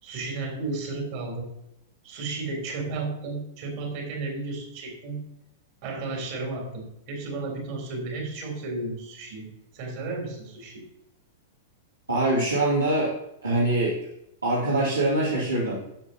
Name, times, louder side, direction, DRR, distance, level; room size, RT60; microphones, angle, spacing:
voice 1, 0.0-1.5 2.0-5.2 5.8-9.5 9.7-10.8, right 3 dB, 50° right, 0 dB, 3.3 m, -33 dB
voice 2, 12.1-13.1 13.4-14.0 14.4-15.8, right 2 dB, 85° right, -7 dB, 2.0 m, -23 dB
10.0 x 7.1 x 2.8 m, 0.83 s
figure-of-eight pair, 100°, 0 cm